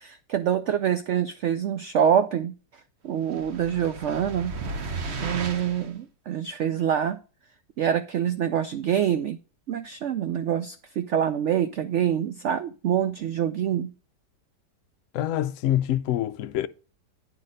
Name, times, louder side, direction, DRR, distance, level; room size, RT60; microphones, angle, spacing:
voice 1, 0.0-2.5 3.0-4.5 5.2-7.2 7.8-9.4 9.7-13.9, right 9 dB, 85° right, 0.6 m, -25 dB
sound 1, 3.3-5.9, right 3 dB, 50° right, 1.0 m, -34 dB
voice 2, 15.1-16.7, left 12 dB, 70° left, 0.7 m, -25 dB
9.6 x 4.1 x 6.4 m
omnidirectional pair, 1.8 m